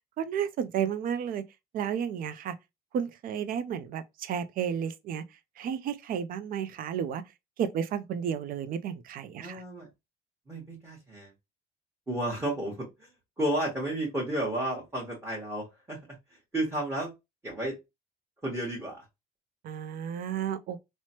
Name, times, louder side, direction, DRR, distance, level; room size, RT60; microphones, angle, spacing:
voice 1, 0.2-1.4 1.7-2.5 2.9-5.2 5.6-7.2 7.6-9.6 19.6-20.8, right 8 dB, 60° right, 0.4 m, -32 dB
voice 2, 9.4-9.9 10.5-11.3 12.1-13.1 13.4-17.1 17.4-17.8 18.4-19.0, right 1 dB, 15° right, 1.1 m, -32 dB
3.0 x 2.1 x 2.7 m
cardioid pair, 110°, 17 cm